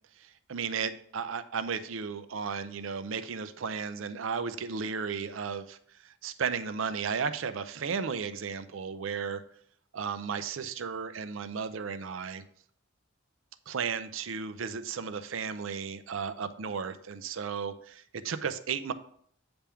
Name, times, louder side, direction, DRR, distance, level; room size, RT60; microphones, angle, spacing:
voice 1, 0.2-9.4 9.9-12.4 13.7-18.9, right 6 dB, 75° right, 12 dB, 0.5 m, -34 dB
8.7 x 3.5 x 5.7 m, 0.63 s
head